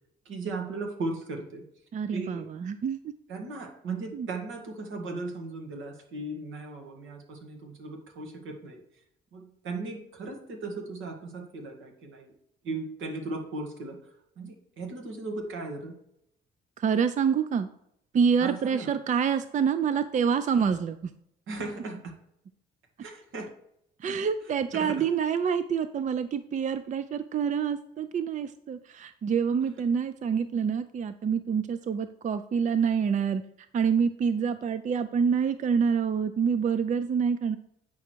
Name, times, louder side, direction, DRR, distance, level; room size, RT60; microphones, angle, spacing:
voice 1, 0.3-1.6 2.1-2.5 3.3-8.8 9.3-12.3 12.6-14.0 14.4-16.0 18.4-18.9 21.5-22.1 23.0-23.5 24.7-25.1, right 3 dB, 80° right, 2 dB, 1.9 m, -37 dB
voice 2, 1.9-3.0 4.1-4.3 16.8-17.7 18.1-21.1 24.0-33.4 33.7-37.6, right 6 dB, 40° right, 12 dB, 0.4 m, -27 dB
8.2 x 5.0 x 4.5 m, 0.75 s
cardioid pair, 90°, 20 cm